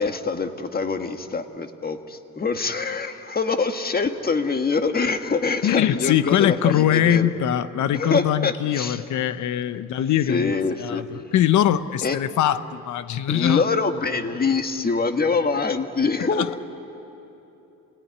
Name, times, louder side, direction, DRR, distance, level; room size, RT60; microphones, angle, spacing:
voice 1, 0.0-7.3 7.9-9.0 10.3-11.0 12.0-12.2 13.3-16.6, left 4 dB, 30° left, 7 dB, 1.6 m, -24 dB
voice 2, 5.6-10.5 10.8-13.7 16.4-16.5, left 11 dB, 75° left, 14 dB, 0.9 m, -22 dB
28.5 x 19.0 x 9.7 m, 2.9 s
cardioid pair, 90°, 30 cm